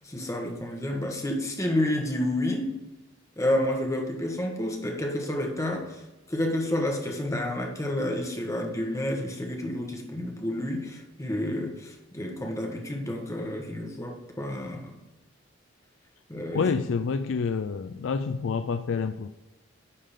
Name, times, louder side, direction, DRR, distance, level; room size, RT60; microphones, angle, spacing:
voice 1, 0.0-2.7 3.4-6.0 6.3-15.0 16.3-16.7, left 1 dB, 15° left, 2 dB, 1.2 m, -30 dB
voice 2, 16.5-19.3, left 5 dB, 70° left, 9 dB, 0.4 m, -28 dB
10.0 x 3.8 x 5.0 m, 1.0 s
head